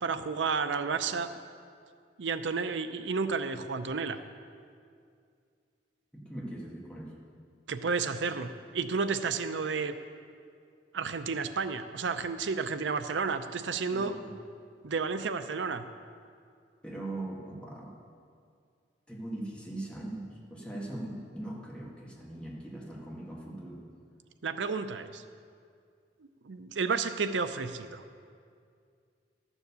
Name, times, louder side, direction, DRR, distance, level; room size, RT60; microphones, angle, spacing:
voice 1, 0.0-1.3 2.2-4.2 7.7-9.9 10.9-14.2 14.8-15.8 24.4-25.2 26.4-28.0, right 5 dB, 90° right, 11 dB, 0.6 m, -31 dB
voice 2, 6.1-7.1 13.9-14.3 16.8-17.9 19.1-23.8, right 1 dB, 5° left, -4 dB, 1.8 m, -40 dB
12.5 x 7.2 x 6.8 m, 2.3 s
head